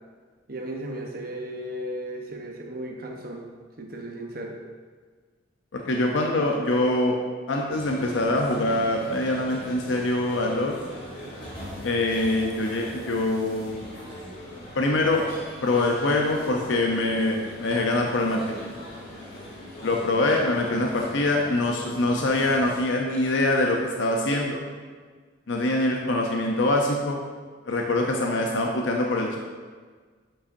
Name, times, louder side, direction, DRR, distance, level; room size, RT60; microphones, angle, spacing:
voice 1, 0.5-3.4 3.8-4.5, right 1 dB, 50° right, 1 dB, 0.8 m, -35 dB
voice 2, 5.7-7.2 7.5-10.8 11.8-13.8 14.8-15.2 15.6-18.7 19.8-24.6 25.5-27.2 27.7-29.4, left 2 dB, 70° left, 0 dB, 0.6 m, -24 dB
sound 1, 7.7-22.8, equal, 50° left, 2.0 m, -41 dB
8.3 x 5.5 x 2.6 m, 1.5 s
head